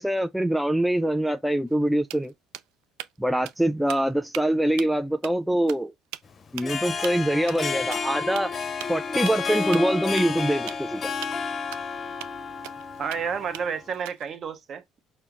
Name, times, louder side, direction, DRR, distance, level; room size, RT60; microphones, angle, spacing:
voice 1, 0.0-2.3 3.2-5.9 6.5-8.5 8.9-11.0, right 1 dB, 5° right, 0.3 m, -24 dB
sound 1, 1.7-1.8 2.1-3.2 3.5-3.6 3.9-4.4 4.8-5.0 5.2-5.3 5.7-5.8 6.1-6.2 6.6-6.7 7.0-7.1 7.5-7.6 7.9-8.0 8.4-8.5 8.8-8.9 9.3-9.5 9.7-10.9 11.2-11.3 11.7-11.8 12.2-12.3 12.6-13.2 13.5-14.4, right 15 dB, 90° right, 0.3 m, -38 dB
Harp, 6.5-13.8, left 5 dB, 40° left, 0.6 m, -31 dB
voice 2, 13.0-15.0, right 6 dB, 45° right, 0.9 m, -31 dB
4.5 x 2.1 x 3.6 m
supercardioid pair, 95°, 0 cm